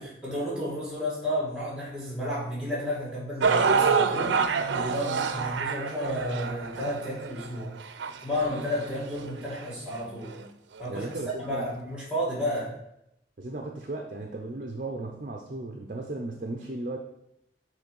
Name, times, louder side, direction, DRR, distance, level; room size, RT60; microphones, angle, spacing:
voice 1, 0.0-7.7 8.2-10.5 10.8-11.2 11.4-12.8, left 1 dB, 5° right, -4 dB, 2.1 m, -32 dB
sound 1, 3.4-9.6 10.3-10.4 11.2-11.3, right 5 dB, 90° right, 0.5 m, -27 dB
voice 2, 10.9-11.7 13.4-17.0, right 2 dB, 45° right, 2 dB, 0.6 m, -35 dB
6.4 x 3.2 x 5.3 m, 0.80 s
head